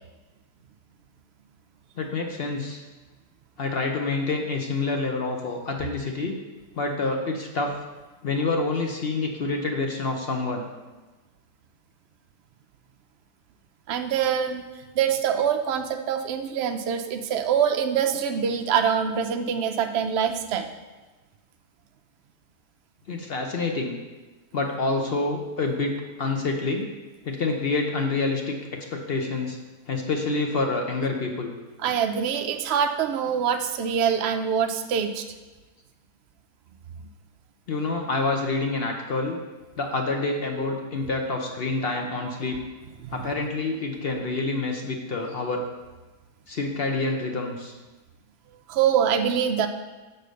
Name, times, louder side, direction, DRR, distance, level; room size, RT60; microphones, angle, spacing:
voice 1, 2.0-2.8 3.6-6.4 6.7-7.7 8.2-10.7 23.1-24.0 24.5-26.9 27.2-28.6 28.9-29.6 29.9-31.5 37.7-39.4 39.8-42.6 43.1-45.6 46.5-47.8, left 3 dB, 55° left, 3 dB, 0.7 m, -27 dB
voice 2, 13.9-14.6 15.0-20.7 31.8-35.3 43.0-43.3 48.7-49.7, right 8 dB, 80° right, 6 dB, 0.5 m, -24 dB
6.7 x 4.1 x 6.4 m, 1.2 s
omnidirectional pair, 1.7 m